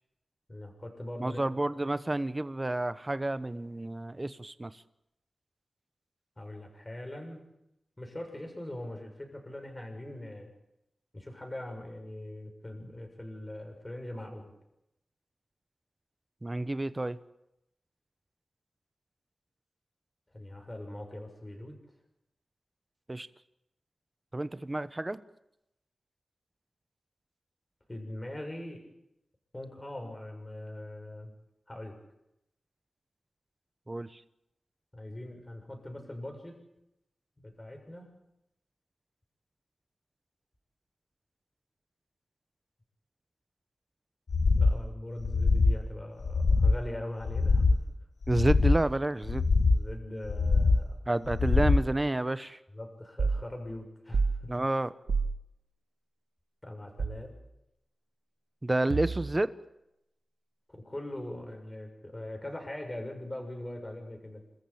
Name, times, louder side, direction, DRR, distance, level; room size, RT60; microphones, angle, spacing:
voice 1, 0.5-1.4 6.4-7.4 8.0-10.5 11.1-14.5 20.3-21.8 27.9-28.8 29.5-31.3 31.7-31.9 34.9-36.5 37.4-38.1 44.6-47.8 49.7-50.9 52.7-54.5 56.6-57.3 60.7-64.4, left 1 dB, 20° left, 3 dB, 7.1 m, -41 dB
voice 2, 1.2-4.7 16.4-17.2 23.1-23.3 24.3-25.2 33.9-34.1 48.3-49.4 51.1-52.6 54.5-54.9 58.6-59.5, right 2 dB, 25° right, 13 dB, 1.1 m, -30 dB
Dinosaur Heart Beat, 44.3-44.8 45.2-45.8 46.2-46.8 47.2-47.8 48.2-48.8 49.2-49.8 50.2-50.8 51.2-51.8, left 3 dB, 70° left, 1.6 m, -24 dB
sound 1, 53.2-53.4 54.1-54.4 55.1-55.4 57.0-57.3 58.9-59.4, right 4 dB, 85° right, 2.0 m, -29 dB
27.5 x 14.5 x 8.8 m, 0.85 s
wide cardioid pair, 85°, 0 cm